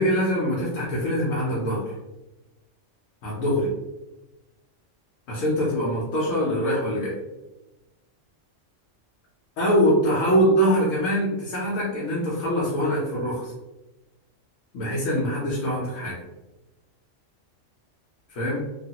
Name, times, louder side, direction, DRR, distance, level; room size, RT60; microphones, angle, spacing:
voice 1, 0.0-1.9 3.2-3.7 5.3-7.1 9.6-13.5 14.7-16.2 18.3-18.6, equal, 90° left, -7 dB, 1.1 m, -23 dB
3.1 x 2.4 x 2.8 m, 1.0 s
omnidirectional pair, 1.3 m